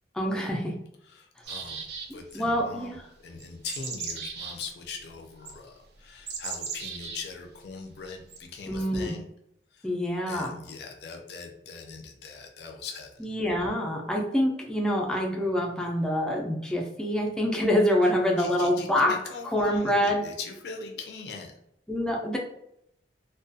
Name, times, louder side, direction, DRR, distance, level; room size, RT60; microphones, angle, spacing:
voice 1, 0.1-0.7 2.3-3.0 8.7-9.2 9.8-10.6 13.2-19.1 19.4-20.2 21.9-22.4, left 1 dB, 5° left, 0 dB, 0.4 m, -26 dB
voice 2, 1.1-1.9 2.1-9.2 9.7-9.9 10.3-13.1 18.4-21.5, left 4 dB, 70° left, 2 dB, 0.4 m, -41 dB
sound 1, 1.4-2.4 3.4-4.6 5.5-5.6 6.3-7.2 8.3-8.4, right 5 dB, 65° right, 0.4 m, -36 dB
2.3 x 2.2 x 2.6 m, 0.76 s
head